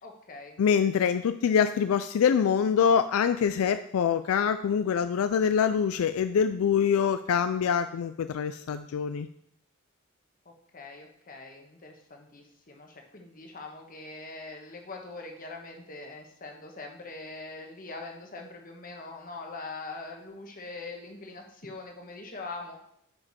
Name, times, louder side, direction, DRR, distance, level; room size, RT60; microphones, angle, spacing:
voice 1, 0.0-0.6 10.4-22.8, left 3 dB, 40° left, 2 dB, 1.3 m, -43 dB
voice 2, 0.6-9.3, left 7 dB, 75° left, 11 dB, 0.3 m, -25 dB
9.7 x 5.1 x 4.2 m, 0.73 s
head